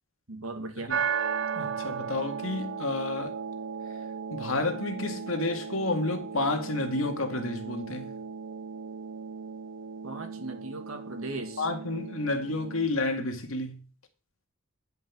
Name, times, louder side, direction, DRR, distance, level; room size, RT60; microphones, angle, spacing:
voice 1, 0.3-0.9 10.0-11.6, right 2 dB, 85° right, 2.3 m, -37 dB
sound 1, 0.9-12.9, right 6 dB, 60° right, 0.4 m, -36 dB
voice 2, 1.5-3.4 4.3-8.2 11.6-13.8, left 2 dB, 80° left, 2.2 m, -30 dB
10.5 x 5.6 x 7.2 m
head